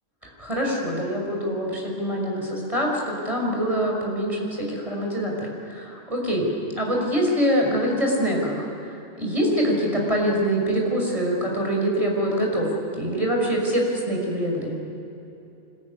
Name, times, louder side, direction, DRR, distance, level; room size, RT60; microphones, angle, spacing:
voice 1, 0.2-12.7 12.9-14.8, equal, 25° right, -1 dB, 6.1 m, -25 dB
25.0 x 22.5 x 9.9 m, 2.9 s
omnidirectional pair, 1.3 m